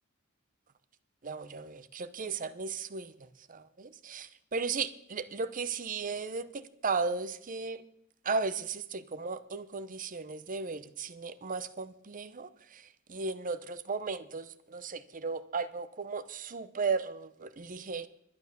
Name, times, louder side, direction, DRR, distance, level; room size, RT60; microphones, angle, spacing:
voice 1, 1.2-3.1 3.5-7.8 8.2-18.1, right 4 dB, 40° right, 13 dB, 0.7 m, -35 dB
11.5 x 9.7 x 6.7 m, 0.74 s
head